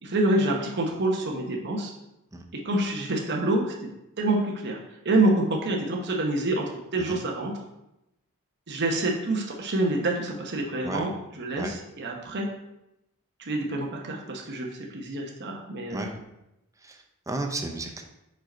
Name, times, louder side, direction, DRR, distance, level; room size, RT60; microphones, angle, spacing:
voice 1, 0.0-1.9 2.6-3.9 4.2-4.8 5.0-6.6 6.9-7.5 8.7-12.5 13.4-16.0, right 2 dB, 50° right, 0 dB, 0.9 m, -27 dB
voice 2, 17.3-18.0, right 2 dB, 15° right, 3 dB, 0.6 m, -33 dB
4.8 x 4.6 x 4.4 m, 0.89 s
head